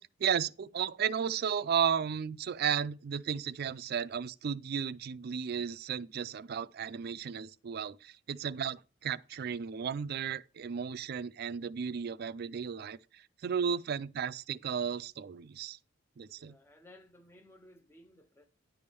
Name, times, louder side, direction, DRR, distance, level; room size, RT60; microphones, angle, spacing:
voice 1, 0.0-15.8 16.2-16.6, right 7 dB, 55° right, 0.4 m, -34 dB
voice 2, 13.4-13.8 16.4-18.5, left 1 dB, 10° left, 0.5 m, -58 dB
10.0 x 3.5 x 6.8 m
head